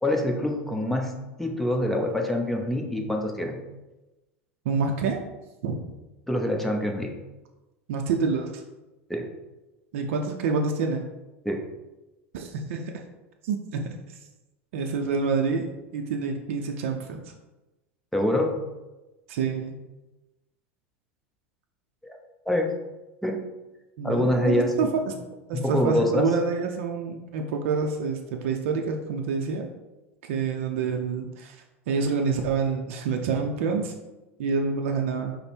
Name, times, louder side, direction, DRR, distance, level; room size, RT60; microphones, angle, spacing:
voice 1, 0.0-1.1 1.4-3.6 6.3-7.1 9.1-9.3 11.4-11.7 18.1-18.6 22.0-22.2 22.5-22.8 23.2-23.4 24.0-24.7 25.5-26.3, left 1 dB, 5° left, 2 dB, 0.7 m, -25 dB
voice 2, 4.6-5.2 5.6-5.8 7.9-8.6 9.9-11.1 12.3-12.9 13.4-14.0 14.7-17.2 19.3-19.8 24.0-25.1 25.5-29.7 30.3-31.6 31.9-33.9 34.4-35.3, right 5 dB, 70° right, 3 dB, 0.5 m, -27 dB
5.2 x 2.1 x 4.4 m, 1.1 s
hypercardioid pair, 100°, 7 cm